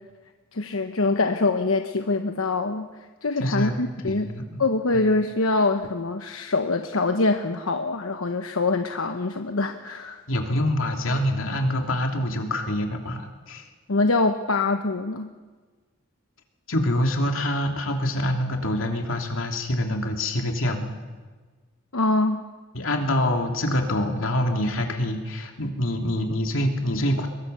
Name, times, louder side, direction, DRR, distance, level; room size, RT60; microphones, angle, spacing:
voice 1, 0.5-4.3 4.6-10.2 13.9-15.3 21.9-22.5, left 3 dB, 90° left, 6 dB, 1.1 m, -24 dB
voice 2, 3.4-3.8 4.0-4.6 4.9-5.0 10.3-13.7 16.7-20.9 22.7-27.3, left 1 dB, 70° left, 3 dB, 3.0 m, -25 dB
22.5 x 22.5 x 6.9 m, 1.4 s
head